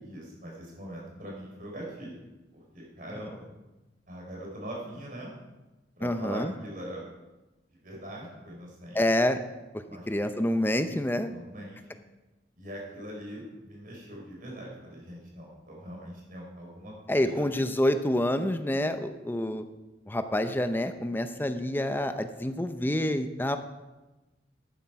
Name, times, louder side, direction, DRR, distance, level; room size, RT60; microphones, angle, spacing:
voice 1, 0.0-2.2 2.5-3.5 4.1-5.3 6.0-7.0 7.7-9.0 9.9-10.1 11.3-11.8 12.6-17.5, right 1 dB, 50° right, -2 dB, 4.3 m, -42 dB
voice 2, 6.0-6.5 9.0-9.4 10.1-11.3 17.1-19.6 20.1-23.6, left 1 dB, 10° left, 9 dB, 0.6 m, -27 dB
12.0 x 9.9 x 4.7 m, 1.1 s
head